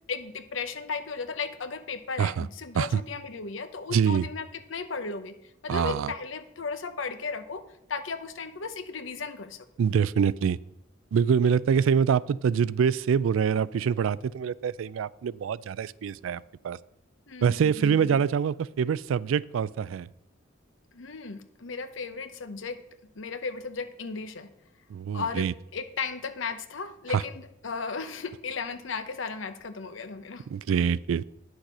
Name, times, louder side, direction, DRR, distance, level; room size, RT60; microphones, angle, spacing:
voice 1, 0.1-5.3 5.6-7.6 7.9-9.7 17.3-18.2 20.9-22.8 23.1-24.5 25.1-30.4, left 5 dB, 75° left, 11 dB, 0.8 m, -35 dB
voice 2, 3.9-4.2 5.7-6.1 9.8-10.6 11.1-16.4 16.6-16.8 17.4-20.1 24.9-25.5 27.1-27.2 30.5-31.2, right 7 dB, 80° right, 20 dB, 0.3 m, -25 dB
9.8 x 6.5 x 6.0 m, 0.83 s
head